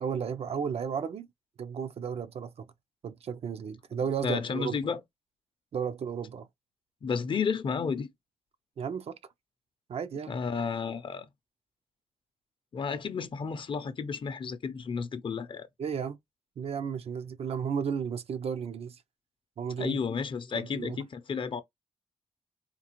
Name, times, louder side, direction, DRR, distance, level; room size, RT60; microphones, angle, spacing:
voice 1, 0.0-1.3 1.6-2.7 3.0-4.8 5.7-6.5 8.8-9.2 9.9-10.3 15.8-16.2 16.6-19.0 19.6-20.0 20.5-21.0, right 7 dB, 60° right, 0.5 m, -33 dB
voice 2, 4.2-5.0 7.0-8.1 10.3-11.3 12.7-15.7 19.8-21.6, left 5 dB, 45° left, 0.5 m, -32 dB
3.7 x 2.4 x 2.9 m
wide cardioid pair, 115°, 12 cm